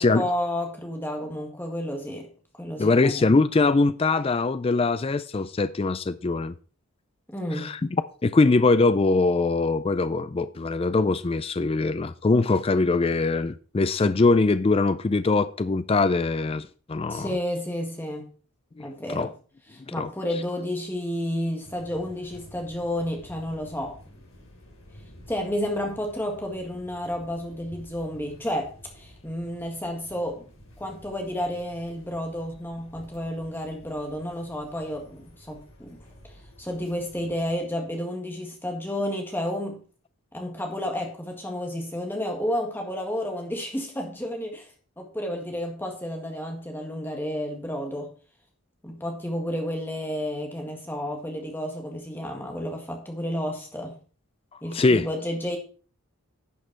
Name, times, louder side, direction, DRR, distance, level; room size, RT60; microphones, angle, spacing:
voice 1, 0.0-2.3 2.6-3.2 7.3-7.7 17.1-18.3 18.8-19.3 19.7-24.0 25.3-30.5 30.8-36.0 36.2-36.3 36.6-39.8 40.3-48.1 48.8-54.0 54.6-55.6, equal, 10° left, 1.7 m, -31 dB
voice 2, 2.8-6.5 7.6-7.8 8.2-17.4 18.8-19.3 20.0-20.1 54.7-55.1, left 3 dB, 25° left, 0.4 m, -22 dB
sound 1, 21.6-37.5, equal, 55° left, 4.3 m, -51 dB
11.0 x 6.5 x 4.5 m
head